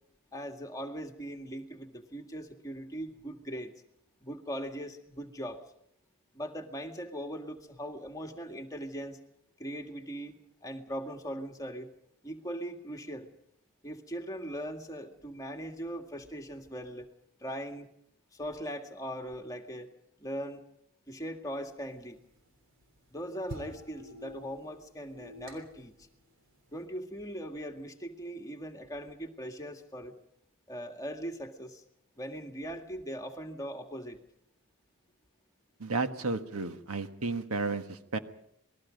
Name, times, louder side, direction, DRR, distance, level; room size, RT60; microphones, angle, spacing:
voice 1, 0.3-3.7 4.2-5.6 6.3-9.2 9.6-10.4 10.6-11.9 12.2-13.3 13.8-17.1 17.4-17.9 18.3-19.9 20.2-20.6 21.1-22.2 23.1-25.9 26.7-30.2 30.7-31.8 32.2-34.2, equal, 15° left, 3 dB, 2.0 m, -40 dB
sound 1, 21.5-26.8, equal, 60° right, 3.5 m, -49 dB
voice 2, 35.8-38.2, right 3 dB, 80° right, 8 dB, 1.5 m, -32 dB
28.0 x 20.5 x 5.3 m, 0.73 s
head